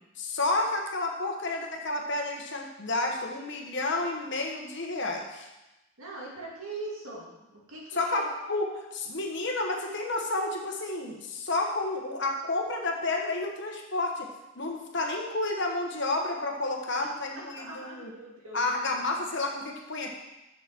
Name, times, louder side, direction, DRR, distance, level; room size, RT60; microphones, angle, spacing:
voice 1, 0.2-5.5 7.9-14.2 14.6-18.1 18.5-20.1, left 2 dB, 55° left, 1 dB, 1.2 m, -30 dB
voice 2, 6.0-8.2 17.3-19.0, right 2 dB, 80° right, -4 dB, 2.7 m, -42 dB
6.9 x 6.0 x 6.1 m, 1.0 s
head